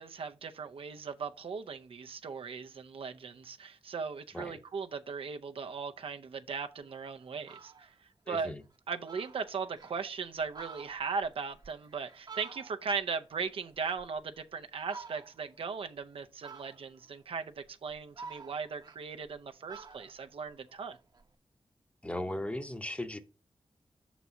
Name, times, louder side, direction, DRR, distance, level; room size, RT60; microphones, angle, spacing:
voice 1, 0.0-7.9 8.3-8.5 8.9-21.0, right 5 dB, 75° right, 0.6 m, -38 dB
Fowl, 6.8-6.9 7.3-7.9 8.4-8.5 8.8-8.9 9.1-10.0 10.4-13.0 13.4-14.4 14.8-15.5 16.4-17.1 17.6-19.4 19.7-21.3, right 5 dB, 45° right, 0.9 m, -50 dB
voice 2, 8.3-8.6 22.0-23.2, left 1 dB, 15° left, 0.8 m, -37 dB
6.1 x 4.1 x 5.6 m
wide cardioid pair, 90°, 9 cm